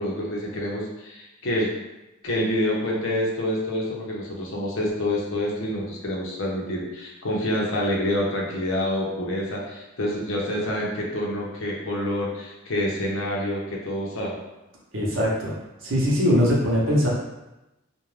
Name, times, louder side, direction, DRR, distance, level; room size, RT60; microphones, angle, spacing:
voice 1, 0.0-1.7 2.2-14.4, left 1 dB, 75° left, -3 dB, 0.7 m, -27 dB
voice 2, 14.9-15.5 15.8-17.1, equal, 70° right, -4 dB, 0.8 m, -21 dB
2.4 x 2.2 x 3.1 m, 0.98 s
head